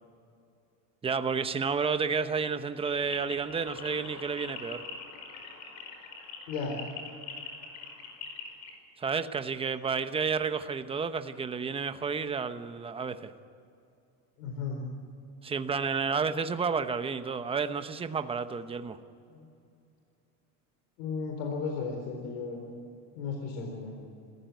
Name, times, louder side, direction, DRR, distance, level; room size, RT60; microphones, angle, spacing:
voice 1, 1.0-4.8 9.0-13.3 15.4-19.0, right 5 dB, 15° right, 10 dB, 1.0 m, -31 dB
sound 1, 2.9-8.8, left 4 dB, 45° left, 5.1 m, -43 dB
voice 2, 14.4-14.8 19.3-19.5 21.0-22.6 23.2-23.9, left 5 dB, 85° left, 2 dB, 4.2 m, -34 dB
28.0 x 15.0 x 9.4 m, 2.5 s
cardioid pair, 140°, 38 cm